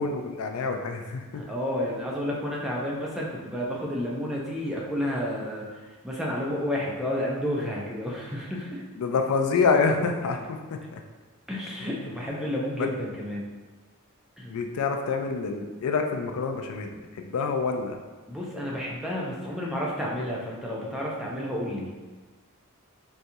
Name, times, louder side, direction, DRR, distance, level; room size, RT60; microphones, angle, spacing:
voice 1, 0.0-1.4 9.0-11.0 11.8-11.9 12.3-12.4 12.8-12.9 14.5-18.0, left 4 dB, 85° left, 5 dB, 0.4 m, -27 dB
voice 2, 1.3-8.8 11.5-13.5 14.4-14.5 18.3-21.9, equal, ahead, -4 dB, 0.4 m, -31 dB
4.1 x 2.3 x 2.6 m, 1.3 s
head